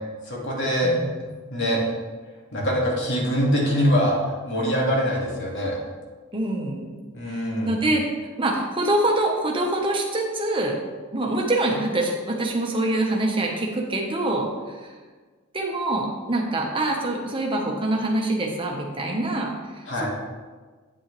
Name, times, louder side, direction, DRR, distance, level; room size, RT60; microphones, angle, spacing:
voice 1, 0.3-1.0 1.5-1.8 2.5-5.8 7.1-7.8 19.9-20.1, equal, 55° left, -3 dB, 2.3 m, -23 dB
voice 2, 6.3-6.9 7.3-8.0 8.4-10.8 11.1-14.9 15.5-19.5 20.0-20.1, right 1 dB, 25° right, 0 dB, 1.2 m, -25 dB
8.8 x 8.7 x 3.4 m, 1.4 s
head